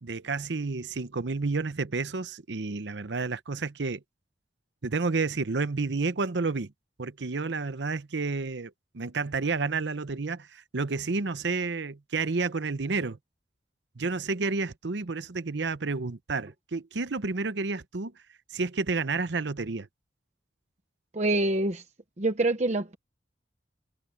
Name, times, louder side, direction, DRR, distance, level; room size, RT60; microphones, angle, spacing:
voice 1, 0.0-4.0 4.8-6.7 7.0-13.2 14.0-18.1 18.5-19.9, right 4 dB, 75° right, 0.8 m, -30 dB
voice 2, 21.1-21.8 22.2-23.0, right 2 dB, 40° right, 1.0 m, -26 dB
head